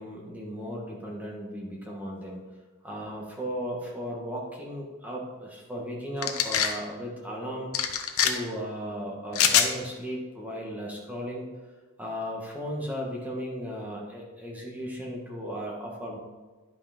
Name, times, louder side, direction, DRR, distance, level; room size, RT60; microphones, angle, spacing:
voice 1, 0.0-2.4 2.8-11.5 12.0-16.2, equal, 5° right, -2 dB, 1.6 m, -36 dB
sound 1, 6.2-6.7 7.7-8.3 9.3-9.7, left 8 dB, 75° left, 0.9 m, -23 dB
10.5 x 5.7 x 5.1 m, 1.3 s
head